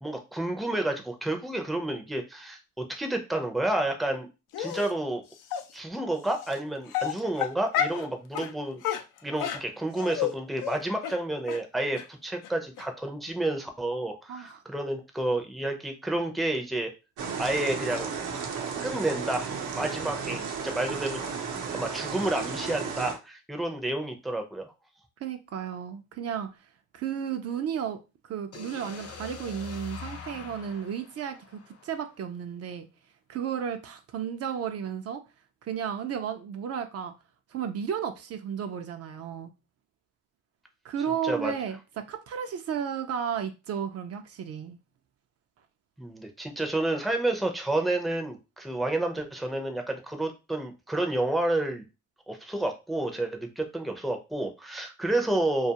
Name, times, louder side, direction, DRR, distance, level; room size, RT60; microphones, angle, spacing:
voice 1, 0.0-4.3 4.6-5.2 5.7-8.8 9.2-16.9 17.4-18.1 18.8-21.2 21.7-24.7 41.2-41.5 46.0-51.8 52.3-55.7, right 1 dB, ahead, 0.5 m, -30 dB
Dog, 4.5-4.9 5.5-5.6 6.4-6.5 6.9-8.0 8.3-8.5 8.8-10.3 10.6-10.8 11.0-11.1 11.5-11.6 12.0-12.1 12.4-12.5 12.8-12.9, left 10 dB, 85° left, 0.5 m, -30 dB
voice 2, 14.3-14.6 20.0-20.5 25.2-26.5 26.9-28.0 28.3-32.9 33.3-35.2 35.6-37.1 37.5-39.5 40.8-44.8, right 8 dB, 55° right, 0.4 m, -33 dB
sound 1, 17.2-23.1, right 6 dB, 85° right, 0.7 m, -34 dB
sound 2, 28.5-32.4, left 5 dB, 55° left, 0.7 m, -43 dB
2.3 x 2.3 x 2.8 m
cardioid pair, 90°, 30 cm